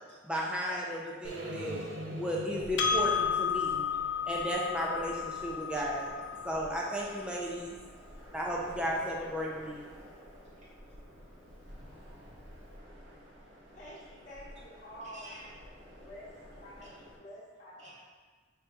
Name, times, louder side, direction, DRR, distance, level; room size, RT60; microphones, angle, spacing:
voice 1, 0.2-3.8 4.3-6.1 6.4-7.8 8.3-9.8, equal, 5° right, -4 dB, 0.6 m, -34 dB
sound 1, 1.2-5.3, right 1 dB, 75° right, 0.6 m, -43 dB
sound 2, 2.5-17.2, equal, 60° right, 1.3 m, -51 dB
Percussion, 2.8-7.6, left 7 dB, 70° left, 0.5 m, -33 dB
voice 2, 11.2-13.8 15.1-16.0 16.8-16.9 17.8-18.0, equal, 35° right, -7 dB, 1.1 m, -55 dB
voice 3, 13.7-15.3 15.8-17.9, equal, 40° left, -9 dB, 1.1 m, -49 dB
5.0 x 2.9 x 3.4 m, 1.5 s
head